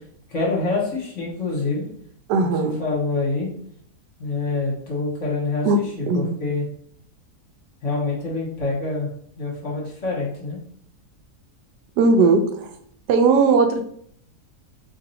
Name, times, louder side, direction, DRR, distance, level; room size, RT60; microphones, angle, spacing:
voice 1, 0.3-1.8 2.4-3.5 4.2-6.6 7.8-9.1 9.4-10.6, left 3 dB, 50° left, -3 dB, 1.4 m, -26 dB
voice 2, 2.3-2.8 5.6-5.8 6.1-6.3 12.0-12.7 13.1-13.8, right 4 dB, 90° right, 5 dB, 1.2 m, -18 dB
3.0 x 2.6 x 4.0 m, 0.63 s
omnidirectional pair, 1.7 m